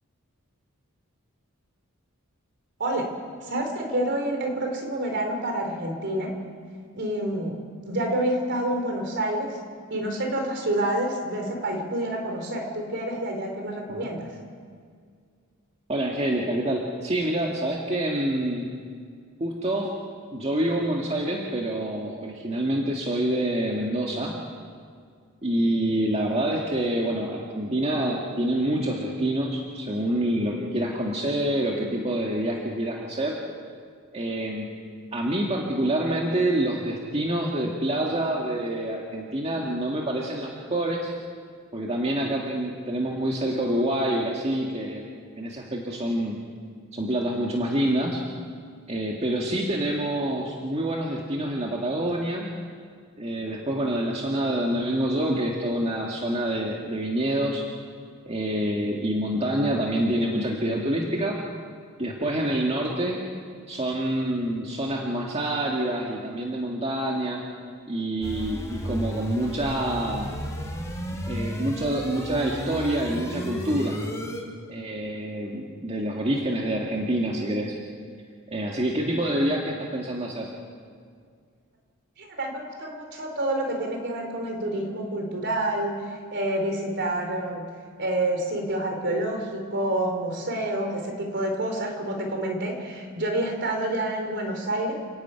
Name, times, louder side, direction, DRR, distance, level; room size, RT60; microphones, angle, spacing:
voice 1, 3.4-6.4 6.9-7.6 7.9-9.6 9.9-14.3 82.2-87.7 88.0-94.9, right 1 dB, 55° right, 3 dB, 4.1 m, -28 dB
voice 2, 15.9-18.7 19.4-19.9 20.3-24.3 25.4-33.4 34.1-34.7 35.1-41.1 41.7-45.0 45.4-46.4 46.9-48.2 48.9-52.5 53.2-57.6 58.3-61.4 62.0-63.2 63.7-67.4 67.9-70.3 71.3-74.0 74.7-77.8 78.5-80.5, right 1 dB, 30° right, -2 dB, 2.0 m, -27 dB
sound 1, 68.2-74.4, equal, 15° left, 3.7 m, -33 dB
29.5 x 10.5 x 9.2 m, 2.1 s
head